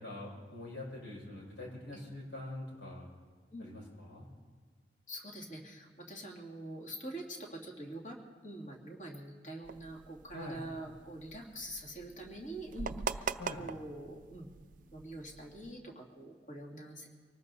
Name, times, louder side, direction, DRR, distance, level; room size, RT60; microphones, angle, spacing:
voice 1, 0.0-3.1 3.6-4.3 10.3-10.6 13.4-13.7, left 1 dB, 75° left, -3 dB, 5.8 m, -44 dB
voice 2, 5.1-8.2 8.4-14.5 14.9-17.1, right 1 dB, 40° left, -2 dB, 2.5 m, -45 dB
sound 1, 9.6-15.7, right 5 dB, 45° right, 0.4 m, -43 dB
24.5 x 19.0 x 2.8 m, 1.5 s
head